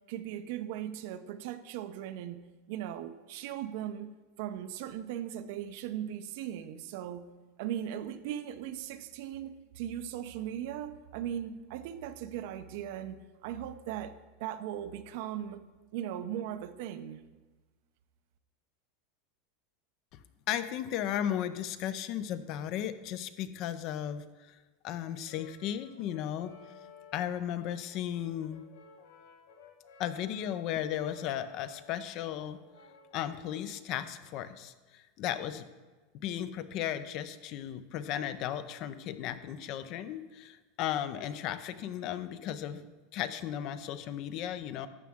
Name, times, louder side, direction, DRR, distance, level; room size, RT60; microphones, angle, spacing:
voice 1, 0.1-2.4 2.7-7.3 7.6-15.6 15.9-17.2, right 10 dB, 60° right, 0.6 m, -38 dB
voice 2, 20.5-24.2 24.8-26.5 27.1-28.6 30.0-32.6 33.1-35.7 36.2-42.9 43.1-44.9, left 10 dB, 40° left, 0.5 m, -35 dB
Brass instrument, 25.3-33.8, left 5 dB, 80° left, 1.1 m, -56 dB
12.0 x 7.4 x 3.6 m
supercardioid pair, 160°, 0 cm